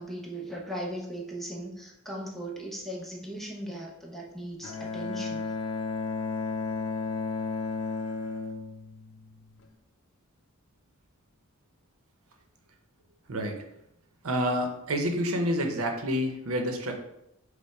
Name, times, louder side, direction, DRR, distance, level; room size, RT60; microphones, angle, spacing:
voice 1, 0.0-5.5, right 1 dB, ahead, -2 dB, 0.7 m, -38 dB
Bowed string instrument, 4.6-9.6, left 4 dB, 85° left, 0.5 m, -33 dB
voice 2, 13.3-13.6 14.2-16.9, equal, 85° right, 4 dB, 0.7 m, -28 dB
5.3 x 2.1 x 4.5 m, 0.84 s
head